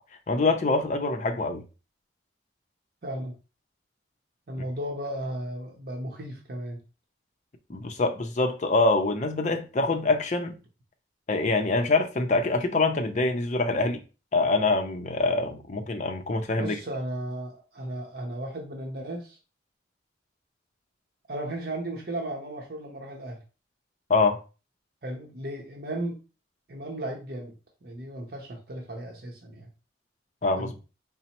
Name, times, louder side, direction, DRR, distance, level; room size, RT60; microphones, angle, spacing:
voice 1, 0.3-1.6 7.7-10.6 11.3-14.0 14.3-16.8 24.1-24.4 30.4-30.7, left 3 dB, 40° left, 0.5 m, -25 dB
voice 2, 3.0-3.4 4.5-6.8 16.6-19.4 21.3-23.4 25.0-26.2 26.7-29.7 30.6-30.7, right 1 dB, 55° right, 0.7 m, -35 dB
4.0 x 2.0 x 4.2 m
head